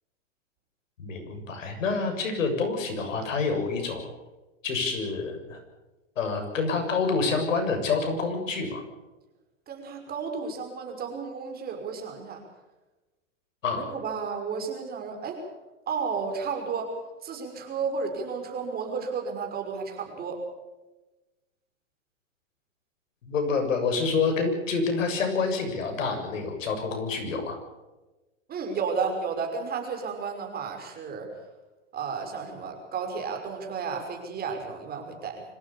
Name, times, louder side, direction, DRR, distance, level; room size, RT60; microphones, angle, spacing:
voice 1, 1.0-4.1 4.6-5.6 6.2-8.8 13.6-13.9 23.2-27.6, left 4 dB, 85° left, 5 dB, 7.2 m, -27 dB
voice 2, 9.7-12.4 13.7-15.4 15.9-17.0 17.2-20.4 28.5-31.3 31.9-35.4, right 5 dB, 25° right, 3 dB, 5.8 m, -32 dB
26.0 x 16.5 x 7.1 m, 1.1 s
hypercardioid pair, 135°, 38 cm